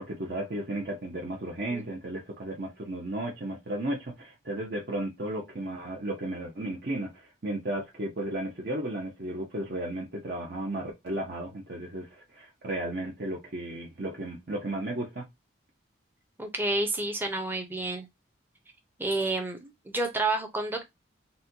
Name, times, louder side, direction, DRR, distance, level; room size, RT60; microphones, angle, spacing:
voice 1, 0.0-15.2, right 1 dB, 50° right, 0.8 m, -34 dB
voice 2, 16.4-18.1 19.0-20.8, right 2 dB, 10° right, 0.7 m, -30 dB
4.2 x 2.2 x 2.7 m
head